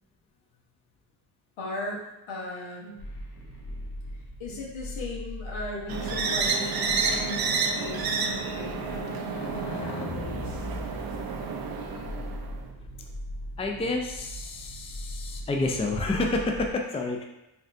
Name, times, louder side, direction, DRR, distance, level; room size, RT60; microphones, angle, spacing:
voice 1, 1.6-3.0 4.4-10.6, left 1 dB, 80° left, -3 dB, 1.0 m, -38 dB
sound 1, 3.0-16.7, left 1 dB, 50° left, 0.8 m, -40 dB
Brass instrument, 5.7-10.2, right 3 dB, 90° right, 0.7 m, -40 dB
sound 2, 5.9-12.7, right 4 dB, 50° right, 0.5 m, -30 dB
voice 2, 13.6-17.2, left 2 dB, 15° left, 2 dB, 0.4 m, -29 dB
4.3 x 2.5 x 2.5 m, 0.95 s
cardioid pair, 75°, 47 cm